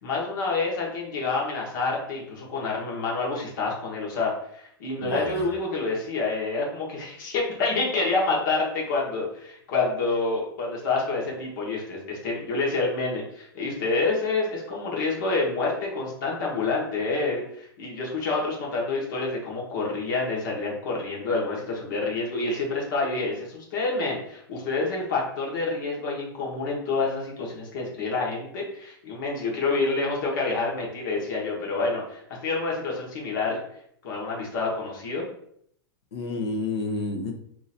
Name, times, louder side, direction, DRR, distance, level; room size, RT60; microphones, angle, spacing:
voice 1, 0.0-33.6 34.0-35.2, left 3 dB, 50° left, -2 dB, 1.3 m, -28 dB
voice 2, 5.0-5.4 36.1-37.3, left 3 dB, 85° left, 2 dB, 1.0 m, -30 dB
3.0 x 2.6 x 4.1 m, 0.68 s
supercardioid pair, 180°, 13 cm